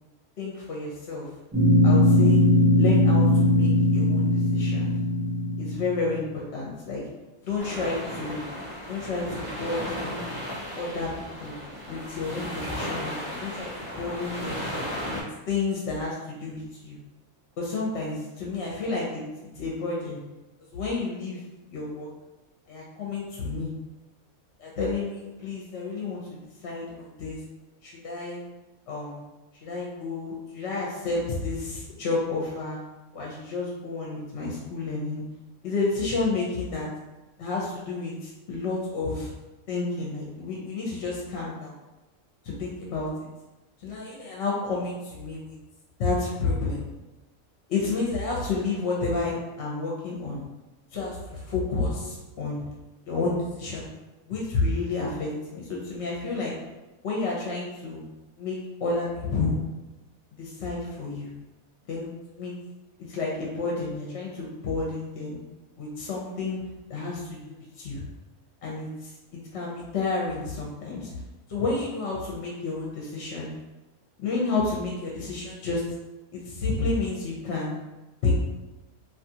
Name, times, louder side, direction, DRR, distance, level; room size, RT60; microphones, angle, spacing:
voice 1, 0.4-1.3 1.8-2.4 2.8-4.9 5.6-7.0 7.4-8.5 8.9-10.2 10.8-11.6 11.9-14.6 15.1-17.0 17.6-20.2 20.7-21.4 21.7-22.1 22.7-23.7 24.6-27.4 27.8-28.4 28.9-29.2 29.6-32.8 33.1-35.2 35.6-36.9 37.4-39.3 39.7-41.8 42.4-43.1 43.8-45.5 46.0-46.8 47.7-50.4 50.9-52.7 53.1-53.9 54.3-56.5 57.0-58.0 58.4-59.6 60.4-61.3 61.9-62.1 62.3-62.5 63.1-65.4 65.8-66.6 66.9-68.0 68.6-71.1 71.5-73.5 74.2-75.8 76.3-77.8 78.2-78.4, left 3 dB, 60° left, -4 dB, 0.8 m, -30 dB
sound 1, 1.5-6.1, left 1 dB, 15° right, 0.5 m, -20 dB
sound 2, 7.6-15.2, equal, 35° left, 0.3 m, -35 dB
2.6 x 2.3 x 2.7 m, 1.0 s
omnidirectional pair, 1.5 m